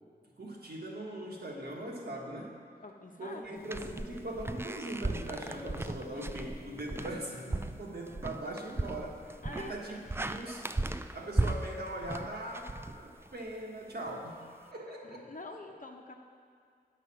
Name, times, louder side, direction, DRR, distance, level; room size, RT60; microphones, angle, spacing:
voice 1, 0.4-2.6 3.2-10.7 11.1-15.2, right 1 dB, 70° right, -2 dB, 1.6 m, -41 dB
voice 2, 2.8-3.4 9.4-9.8 15.0-16.1, left 2 dB, 50° left, 2 dB, 1.0 m, -46 dB
sound 1, 3.5-9.8, left 5 dB, 90° left, 0.8 m, -54 dB
sound 2, 3.6-13.5, right 2 dB, 15° right, 0.3 m, -36 dB
9.2 x 6.7 x 6.1 m, 2.2 s
wide cardioid pair, 45°, 17 cm